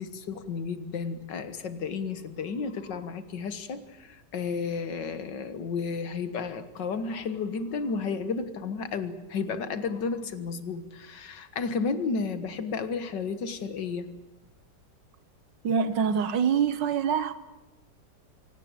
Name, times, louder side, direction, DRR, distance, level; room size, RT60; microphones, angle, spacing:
voice 1, 0.0-14.1, left 5 dB, 80° left, 2.1 m, -32 dB
voice 2, 15.6-17.3, right 7 dB, 90° right, 1.8 m, -25 dB
24.5 x 17.5 x 8.9 m
omnidirectional pair, 1.9 m